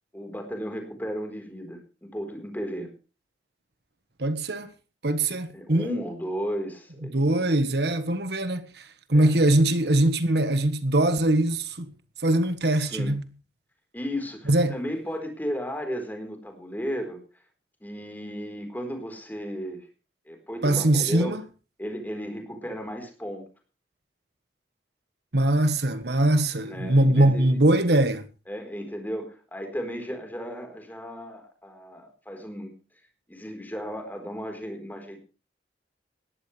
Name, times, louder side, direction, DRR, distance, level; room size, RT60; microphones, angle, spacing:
voice 1, 0.1-2.9 5.5-7.4 9.1-9.3 12.8-13.1 13.9-17.2 17.8-19.9 20.3-21.4 21.8-23.5 26.6-27.6 28.5-32.7 33.3-35.2, equal, 10° left, 4.2 m, -34 dB
voice 2, 4.2-4.7 5.0-6.0 7.1-11.9 12.2-13.2 14.5-14.8 20.6-21.4 25.3-28.3, right 1 dB, 70° right, 1.5 m, -22 dB
19.5 x 15.0 x 3.4 m
head